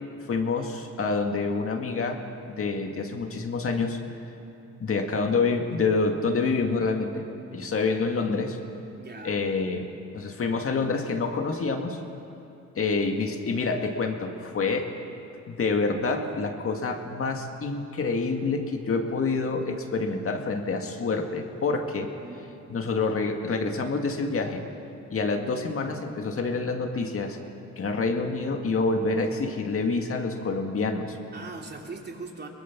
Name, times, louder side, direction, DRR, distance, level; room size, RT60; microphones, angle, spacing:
voice 1, 0.3-2.2 2.5-4.0 4.8-7.3 7.5-8.6 9.2-12.0 12.8-14.9 15.5-22.1 22.7-24.6 25.1-27.4 27.8-31.2, left 4 dB, 45° left, 3 dB, 2.0 m, -27 dB
voice 2, 9.0-9.4 22.2-22.5 31.3-32.5, right 3 dB, 35° right, 1 dB, 3.0 m, -40 dB
23.0 x 19.5 x 6.0 m, 2.7 s
cardioid pair, 90°, 30 cm